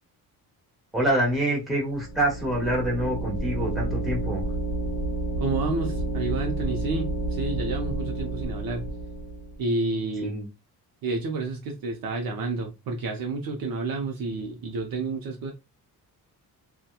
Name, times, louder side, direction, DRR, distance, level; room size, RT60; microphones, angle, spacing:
voice 1, 0.9-4.4 10.2-10.5, right 1 dB, ahead, -4 dB, 1.0 m, -26 dB
sound 1, 1.9-9.6, right 2 dB, 50° left, 0.9 m, -30 dB
voice 2, 5.4-8.9 9.6-10.3 11.0-15.5, right 3 dB, 65° right, 1 dB, 0.6 m, -30 dB
2.8 x 2.2 x 2.2 m, 0.25 s
wide cardioid pair, 140°, 38 cm